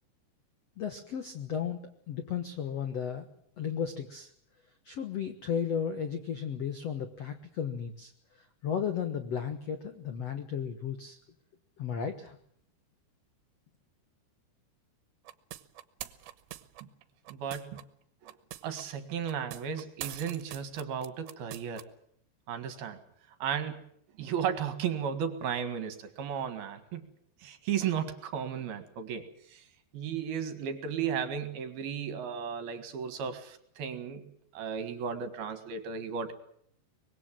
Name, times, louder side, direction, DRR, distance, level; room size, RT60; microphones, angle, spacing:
voice 1, 0.8-1.8 2.1-3.3 3.6-4.3 4.8-8.1 8.6-11.2 11.8-12.4, left 8 dB, 85° left, 8 dB, 1.4 m, -34 dB
sound 1, 15.3-17.8 18.3-18.8 19.3-21.8, right 14 dB, 80° right, 3.4 m, -44 dB
voice 2, 17.3-17.8 18.2-18.3 18.6-21.9 22.5-23.0 23.4-23.8 24.2-27.0 27.4-29.6 29.9-34.2 34.5-36.3, right 7 dB, 60° right, 10 dB, 3.5 m, -34 dB
24.5 x 21.5 x 7.6 m, 0.66 s
omnidirectional pair, 5.2 m